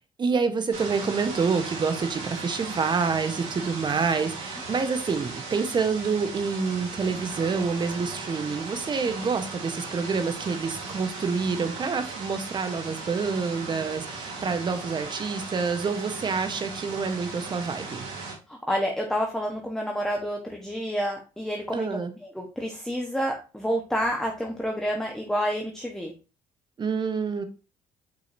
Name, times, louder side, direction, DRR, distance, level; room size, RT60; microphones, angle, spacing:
voice 1, 0.2-18.1 21.7-22.1 26.8-27.4, right 5 dB, 40° right, 9 dB, 1.3 m, -27 dB
sound 1, 0.7-18.3, right 4 dB, 80° right, 3.1 m, -37 dB
voice 2, 18.5-22.0 22.3-26.1, equal, 5° left, 1 dB, 1.4 m, -29 dB
6.4 x 5.5 x 2.8 m, 0.32 s
supercardioid pair, 70°, 12 cm